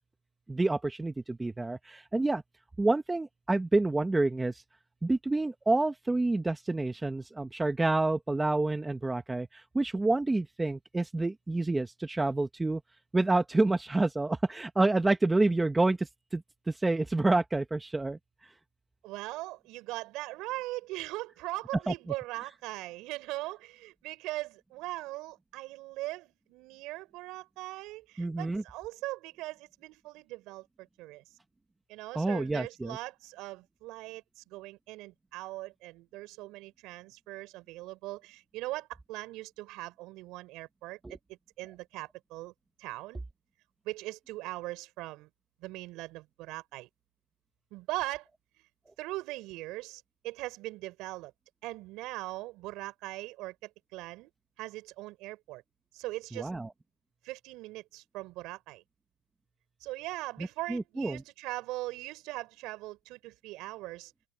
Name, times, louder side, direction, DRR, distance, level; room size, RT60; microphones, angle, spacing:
voice 1, 0.5-2.4 2.8-4.6 5.0-12.8 13.1-18.2 21.9-22.0 28.2-28.6 32.1-33.0 41.0-41.2 56.3-56.7 60.4-61.2, right 2 dB, 10° right, 1.2 m, -28 dB
voice 2, 19.0-31.2 31.9-41.2 41.6-42.5 42.8-43.2 43.8-45.3 45.6-46.9 47.7-48.3 49.0-51.3 51.6-54.3 54.6-55.6 55.9-56.5 57.2-58.8 59.8-64.1, right 19 dB, 55° right, 5.2 m, -40 dB
open air
supercardioid pair, 125°, 0 cm